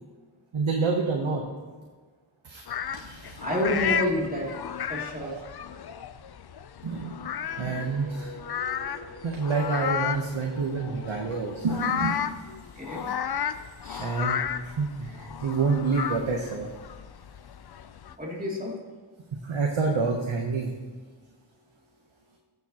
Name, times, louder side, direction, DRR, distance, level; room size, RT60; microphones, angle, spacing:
voice 1, 0.5-1.4 2.4-2.6 2.9-3.4 5.2-5.5 6.8-7.2 7.6-8.3 9.2-12.2 14.0-14.5 14.8-16.7 19.4-20.7, right 4 dB, 85° right, 1 dB, 1.0 m, -28 dB
sound 1, 2.7-18.1, left 8 dB, 55° left, 0.5 m, -33 dB
voice 2, 3.4-4.5 4.9-5.4 12.8-13.0 13.8-14.1 18.2-18.8, left 1 dB, 20° right, -4 dB, 2.6 m, -29 dB
sound 2, 7.0-11.8, left 1 dB, 80° left, 2.2 m, -46 dB
14.0 x 7.0 x 2.9 m, 1.4 s
wide cardioid pair, 45°, 47 cm